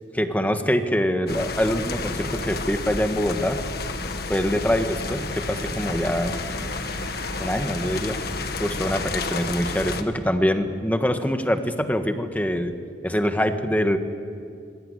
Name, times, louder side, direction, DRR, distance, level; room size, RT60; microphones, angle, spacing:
voice 1, 0.1-3.6 4.3-6.4 7.4-8.2 8.6-12.8 13.0-14.0, equal, 10° left, 7 dB, 1.5 m, -24 dB
sound 1, 1.3-10.0, left 3 dB, 55° left, 1.6 m, -31 dB
sound 2, 3.7-10.1, right 3 dB, 70° right, 2.7 m, -44 dB
26.5 x 22.0 x 9.9 m, 2.3 s
head